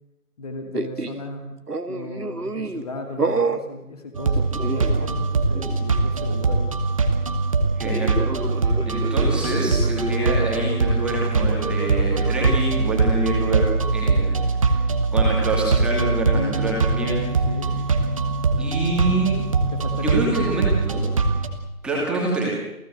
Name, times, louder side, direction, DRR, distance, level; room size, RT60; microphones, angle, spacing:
voice 1, 0.4-1.6 1.8-6.7 16.3-16.7 17.5-17.7 19.6-20.3, left 2 dB, 25° left, 5 dB, 2.4 m, -35 dB
sound 1, 0.7-1.2 1.7-2.9 3.2-3.7 4.4-5.3 5.5-5.8 7.8-12.7, right 3 dB, 85° right, 2.0 m, -30 dB
sound 2, 4.1-21.5, right 3 dB, 20° right, 1.4 m, -22 dB
voice 2, 7.8-8.1 8.9-13.6 13.9-14.8 15.1-17.3 18.6-19.3 20.0-21.1 21.8-22.5, right 2 dB, ahead, -4 dB, 2.4 m, -26 dB
28.5 x 16.0 x 7.9 m, 0.92 s
figure-of-eight pair, 155°, 45 cm